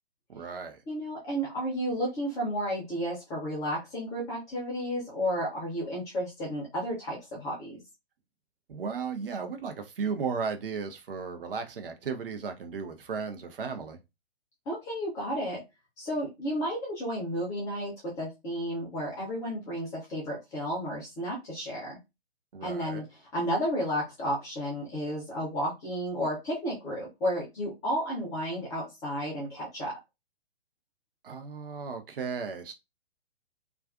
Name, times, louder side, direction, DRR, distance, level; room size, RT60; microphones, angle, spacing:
voice 1, 0.3-0.8 8.7-14.0 22.5-23.1 31.2-32.7, right 5 dB, 60° right, 0.7 m, -35 dB
voice 2, 0.9-7.8 14.7-15.6 16.0-22.0 22.6-30.0, equal, 10° left, 0.5 m, -32 dB
2.4 x 2.3 x 2.3 m
figure-of-eight pair, 125°, 32 cm